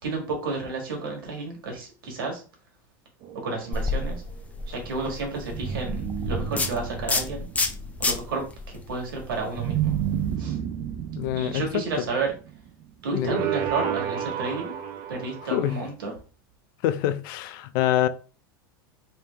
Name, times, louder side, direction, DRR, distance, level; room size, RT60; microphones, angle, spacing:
voice 1, 0.0-2.4 3.3-4.2 4.7-7.5 8.0-9.9 10.4-10.6 11.3-12.3 13.0-14.8 15.1-16.1, right 3 dB, 85° right, 1.6 m, -31 dB
sound 1, 3.2-4.2 5.5-8.1 9.5-12.7 13.2-15.8, right 9 dB, 50° right, 0.6 m, -31 dB
sound 2, 3.7-10.3, left 3 dB, 15° left, 0.5 m, -31 dB
voice 2, 11.2-11.8 13.1-13.4 15.5-15.8 16.8-18.1, left 12 dB, 65° left, 0.5 m, -25 dB
3.4 x 2.8 x 3.4 m
supercardioid pair, 110°, 12 cm